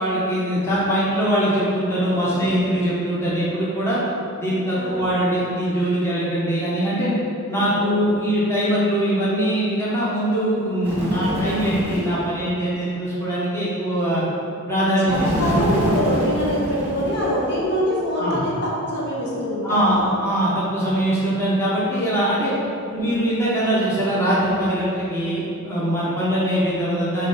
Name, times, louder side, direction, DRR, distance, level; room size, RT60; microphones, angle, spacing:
voice 1, 0.0-4.0 4.4-7.1 7.5-14.2 14.7-15.6 18.2-18.5 19.6-22.5 22.9-27.3, equal, 10° left, -9 dB, 1.2 m, -22 dB
voice 2, 4.8-5.1 7.6-8.0 11.2-11.4 15.1-20.2 22.9-23.1, equal, 50° left, -5 dB, 1.5 m, -25 dB
Bird, 10.8-12.2 15.1-17.6, equal, 10° right, 1.5 m, -25 dB
8.0 x 3.3 x 5.7 m, 2.8 s
head